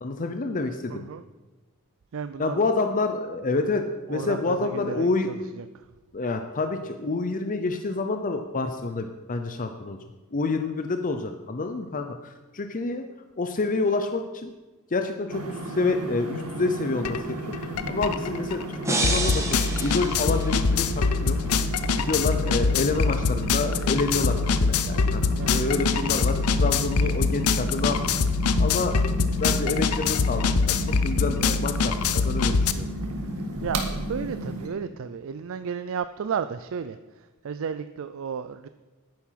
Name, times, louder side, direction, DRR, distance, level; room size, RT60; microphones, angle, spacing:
voice 1, 0.0-1.1 2.4-3.8 4.1-5.3 6.1-10.0 10.3-13.0 13.4-14.5 14.9-21.4 22.0-25.2 25.5-28.0 28.6-29.0 29.4-30.8 31.0-32.9, left 3 dB, 40° left, 6 dB, 0.6 m, -28 dB
voice 2, 0.9-1.2 2.1-2.7 4.1-5.8 25.3-25.6 33.6-38.7, right 6 dB, 65° right, 11 dB, 0.4 m, -33 dB
sound 1, 15.3-34.7, right 1 dB, 85° right, 1.8 m, -33 dB
sound 2, 17.0-17.2 17.5-32.7, left 4 dB, 90° left, 0.7 m, -24 dB
sound 3, 18.8-21.0, right 2 dB, 15° right, 1.6 m, -29 dB
10.5 x 9.4 x 5.8 m, 1.2 s
head